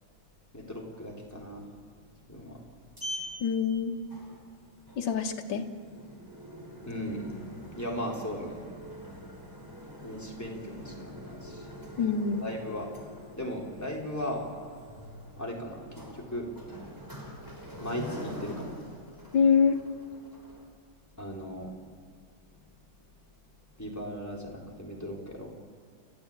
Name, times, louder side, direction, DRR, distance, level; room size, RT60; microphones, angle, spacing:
voice 1, 0.5-1.7 2.3-2.6 6.8-7.4 7.7-8.7 10.0-11.7 12.4-12.9 13.4-14.5 15.4-16.5 17.8-18.7 21.2-21.8 23.8-25.5, equal, 10° left, -1 dB, 3.9 m, -37 dB
Sliding door, 2.4-20.6, equal, 10° right, 4.3 m, -45 dB
voice 2, 3.4-4.0 5.0-5.7 12.0-12.4 19.3-19.8, left 6 dB, 70° left, 3 dB, 2.1 m, -25 dB
30.0 x 13.5 x 8.8 m, 2.2 s
omnidirectional pair, 2.2 m